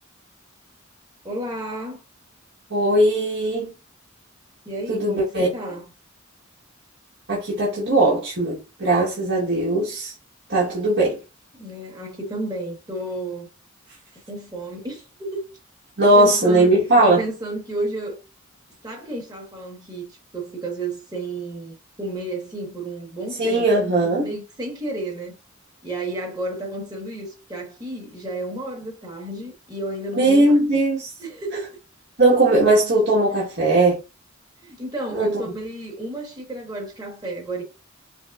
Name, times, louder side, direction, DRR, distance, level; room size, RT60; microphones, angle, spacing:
voice 1, 1.2-2.0 4.6-5.8 11.6-13.5 14.3-15.4 16.0-16.7 17.0-18.2 18.8-23.9 24.2-25.4 25.8-30.8 31.2-31.8 34.6-37.6, right 2 dB, 20° right, 1.2 m, -32 dB
voice 2, 2.7-3.7 4.9-5.5 7.3-10.1 10.5-11.2 16.0-17.2 23.4-24.3 30.2-31.1 32.2-34.0 35.1-35.3, right 2 dB, 60° right, 1.3 m, -19 dB
5.5 x 2.1 x 2.3 m
head